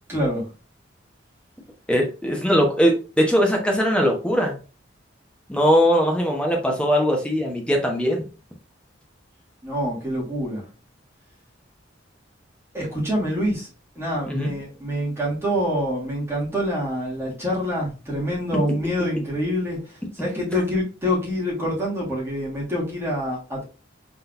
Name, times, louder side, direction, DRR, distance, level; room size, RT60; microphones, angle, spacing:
voice 1, 0.1-0.5 9.6-10.6 12.7-13.7 14.0-19.8 20.1-23.6, equal, 15° right, -6 dB, 2.4 m, -26 dB
voice 2, 1.9-4.6 5.5-8.2 14.3-14.5, equal, 5° left, 1 dB, 1.1 m, -20 dB
4.3 x 3.9 x 2.6 m, 0.33 s
head